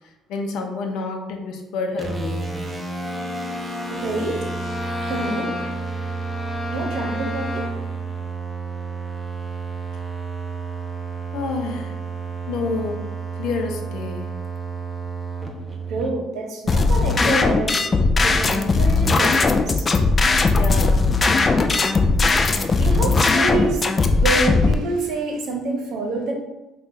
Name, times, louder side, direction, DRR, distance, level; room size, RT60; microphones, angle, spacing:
voice 1, 0.3-2.7 11.3-12.0 12.5-13.0 13.4-14.3 20.4-21.1, left 4 dB, 80° left, 3 dB, 0.6 m, -28 dB
sound 1, 2.0-16.1, right 4 dB, 20° right, 0.6 m, -31 dB
Bowed string instrument, 3.0-8.0, left 2 dB, 15° left, 0.9 m, -32 dB
voice 2, 3.9-4.4 5.0-5.5 6.7-7.7 15.9-17.9 18.2-19.9 22.8-26.3, right 3 dB, 75° right, 1 dB, 0.8 m, -27 dB
sound 2, 16.7-24.7, left 3 dB, 30° left, 0.3 m, -18 dB
5.5 x 2.3 x 2.6 m, 1.0 s
cardioid pair, 100°, 0 cm